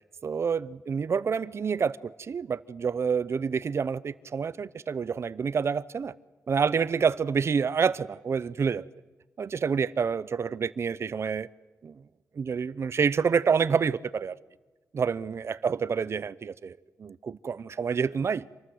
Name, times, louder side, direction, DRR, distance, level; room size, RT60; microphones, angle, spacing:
voice 1, 0.2-6.1 6.5-8.8 9.4-11.5 11.8-12.0 12.4-14.3 14.9-18.5, right 6 dB, 50° right, 0.7 m, -28 dB
27.5 x 19.5 x 8.0 m
wide cardioid pair, 145°, 6 cm